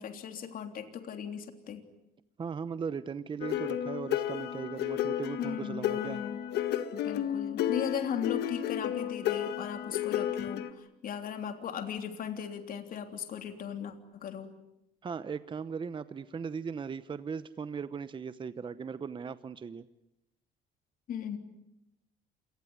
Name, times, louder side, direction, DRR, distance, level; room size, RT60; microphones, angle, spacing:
voice 1, 0.0-1.8 5.4-6.4 6.9-14.5 21.1-21.4, left 8 dB, 55° left, 6 dB, 3.4 m, -37 dB
voice 2, 2.4-6.2 15.0-19.8, right 6 dB, 30° right, 14 dB, 0.9 m, -38 dB
sound 1, 3.4-10.7, left 11 dB, 75° left, 1.8 m, -32 dB
28.0 x 19.0 x 9.5 m, 0.88 s
cardioid pair, 110°, 17 cm